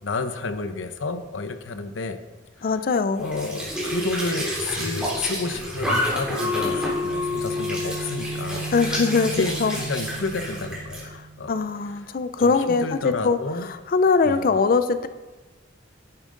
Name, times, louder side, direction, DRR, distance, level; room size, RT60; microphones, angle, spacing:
voice 1, 0.0-2.2 2.6-2.7 3.2-8.7 9.2-11.5 11.9-12.1 12.4-13.7 14.2-14.5, left 3 dB, 75° left, 9 dB, 0.8 m, -31 dB
voice 2, 2.6-3.2 8.7-9.3 9.6-9.7 11.5-13.4 13.9-15.1, left 4 dB, 45° left, 11 dB, 0.4 m, -21 dB
Squeak / Sink (filling or washing) / Trickle dribble, 3.1-11.1, equal, 5° right, 3.4 m, -30 dB
sound 1, 6.4-11.5, left 2 dB, 85° right, 3.7 m, -31 dB
10.5 x 8.9 x 3.8 m, 1.2 s
head